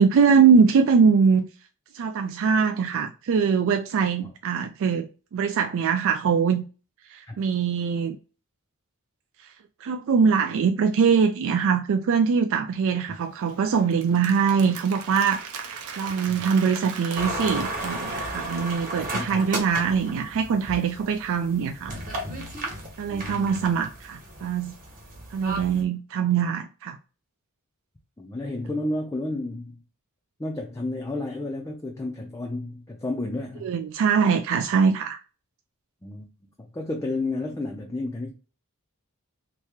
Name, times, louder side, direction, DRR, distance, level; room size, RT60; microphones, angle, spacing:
voice 1, 0.0-1.4 1.9-6.6 7.1-8.2 9.4-9.5 9.8-15.4 16.0-21.9 23.0-24.7 25.3-27.0 33.6-35.2, right 6 dB, 60° right, 0.3 m, -22 dB
Applause, 13.2-19.0, right 6 dB, 85° right, 0.7 m, -39 dB
sound 1, 17.1-25.8, right 1 dB, 40° right, 1.1 m, -34 dB
voice 2, 23.1-23.6 25.7-25.9 28.2-29.8 30.4-33.7 36.0-36.3 36.6-38.3, left 2 dB, 15° left, 0.4 m, -31 dB
2.9 x 2.7 x 3.4 m
head